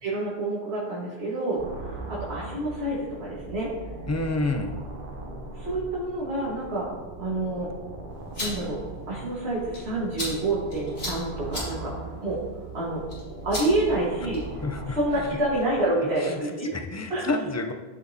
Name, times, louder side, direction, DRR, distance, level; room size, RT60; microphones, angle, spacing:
voice 1, 0.0-3.7 5.5-6.9 7.2-7.7 8.4-8.8 9.1-11.9 12.2-12.4 12.7-13.0 13.4-14.4 14.9-16.7 17.1-17.3, right 2 dB, 75° right, -7 dB, 1.8 m, -28 dB
sound 1, 1.6-15.6, right 2 dB, 55° right, 1.1 m, -39 dB
voice 2, 4.1-4.7 14.6-15.0 16.2-16.4 16.7-17.7, left 2 dB, 25° left, 4 dB, 0.4 m, -28 dB
sound 2, 8.1-14.6, left 1 dB, 70° left, 2.9 m, -39 dB
13.0 x 5.1 x 2.7 m, 1.3 s
omnidirectional pair, 1.1 m